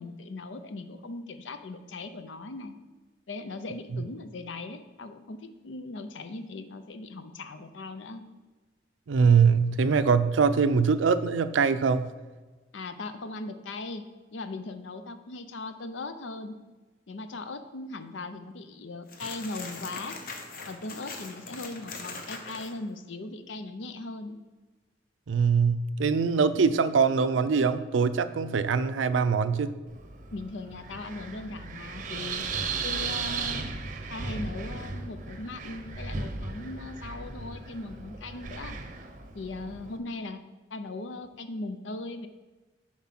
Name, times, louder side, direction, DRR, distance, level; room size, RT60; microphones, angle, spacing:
voice 1, 0.0-2.8 3.3-8.2 12.7-14.1 14.3-16.5 17.1-20.2 20.7-24.4 30.3-32.4 32.8-33.7 34.1-38.8 39.3-40.4 40.7-42.3, left 2 dB, 80° left, 9 dB, 0.6 m, -39 dB
voice 2, 9.1-12.1 25.3-29.7, right 5 dB, 90° right, 13 dB, 0.4 m, -23 dB
sound 1, 19.1-22.7, left 3 dB, 50° left, 0.9 m, -41 dB
Wind, 29.9-40.0, right 4 dB, 40° right, 0.7 m, -36 dB
7.3 x 4.7 x 5.9 m, 1.3 s
head